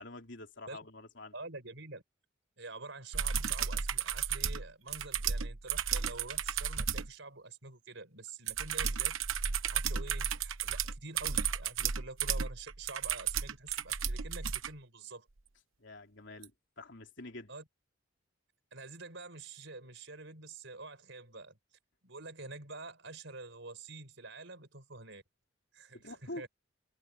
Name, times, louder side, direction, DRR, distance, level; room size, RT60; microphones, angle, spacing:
voice 1, 0.0-1.3 15.8-17.5 25.9-26.4, left 2 dB, 60° left, 3.6 m, -47 dB
voice 2, 1.3-2.0 2.6-9.2 9.7-15.3 17.5-17.6 18.7-21.6 22.0-25.2 25.7-26.5, right 3 dB, 65° right, 5.1 m, -47 dB
sound 1, 3.1-7.1 8.5-14.7 16.4-16.5, right 7 dB, 80° right, 1.0 m, -33 dB
head